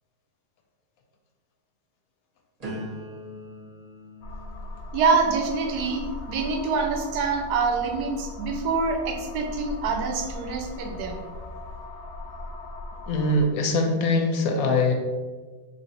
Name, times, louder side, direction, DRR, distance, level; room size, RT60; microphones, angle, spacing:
sound 1, 2.6-8.5 9.0-9.4, equal, 30° right, 0.8 m, -43 dB
sound 2, 4.2-13.5, left 2 dB, 90° left, 1.2 m, -38 dB
voice 1, 4.9-11.2, right 4 dB, 90° right, 3 dB, 1.2 m, -26 dB
voice 2, 13.1-14.9, left 2 dB, 70° left, 3 dB, 0.9 m, -22 dB
3.2 x 2.7 x 4.0 m, 1.4 s
omnidirectional pair, 1.7 m